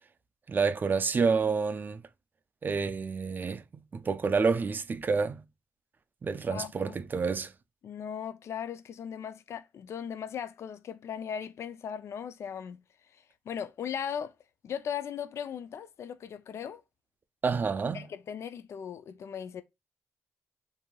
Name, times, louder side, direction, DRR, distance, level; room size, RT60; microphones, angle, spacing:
voice 1, 0.5-2.0 2.6-3.6 3.9-5.4 6.2-7.5 17.4-18.0, right 5 dB, 40° right, 0.3 m, -28 dB
voice 2, 6.5-7.0 7.8-14.4 14.6-16.8 17.9-19.6, left 8 dB, 65° left, 0.3 m, -38 dB
3.0 x 2.6 x 2.2 m
cardioid pair, 70°, 5 cm